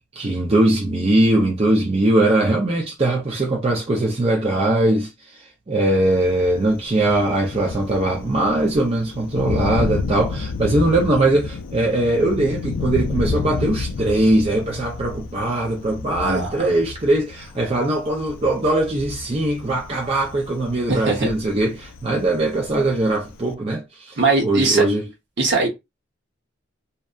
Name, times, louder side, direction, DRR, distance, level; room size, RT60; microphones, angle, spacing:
voice 1, 0.1-25.0, right 1 dB, 30° right, 0.5 m, -21 dB
Thunder, 6.0-23.5, left 4 dB, 70° left, 0.3 m, -31 dB
voice 2, 16.2-16.7 20.9-21.3 24.2-24.9 25.4-25.7, right 3 dB, 60° right, 0.9 m, -20 dB
2.7 x 2.2 x 2.3 m
head